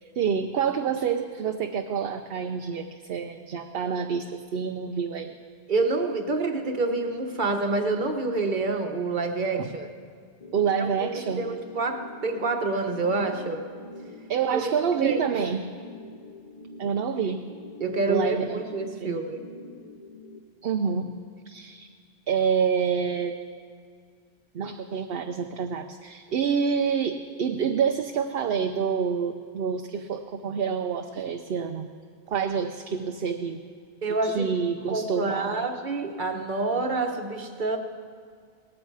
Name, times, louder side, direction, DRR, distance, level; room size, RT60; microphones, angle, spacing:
voice 1, 0.0-5.3 9.6-9.7 10.5-11.4 14.3-15.7 16.8-17.5 18.1-18.6 19.0-19.2 20.6-21.2 21.5-21.9 22.3-23.4 24.5-31.9 32.3-33.6 34.2-35.6, right 6 dB, 65° right, 5 dB, 0.8 m, -27 dB
voice 2, 5.7-9.9 10.8-13.7 15.0-15.5 17.8-19.4 34.0-34.5 34.9-37.8, right 3 dB, 45° right, 4 dB, 1.3 m, -27 dB
sound 1, 10.4-20.4, left 2 dB, 35° left, 0.8 m, -45 dB
18.5 x 14.0 x 4.7 m, 2.1 s
omnidirectional pair, 1.1 m